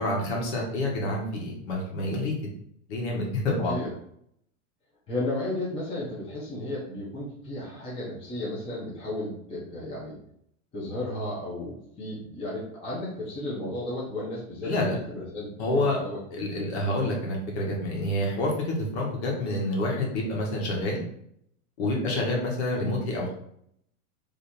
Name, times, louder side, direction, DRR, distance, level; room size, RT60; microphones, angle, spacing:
voice 1, 0.0-2.3 2.9-3.7 14.6-15.0 15.6-16.0 16.3-21.0 21.8-23.3, left 1 dB, 55° left, -1 dB, 1.6 m, -28 dB
voice 2, 3.6-3.9 5.1-10.2 10.7-16.2 16.5-16.6, left 1 dB, 15° left, -6 dB, 0.9 m, -34 dB
3.5 x 3.2 x 4.3 m, 0.70 s
supercardioid pair, 165°, 41 cm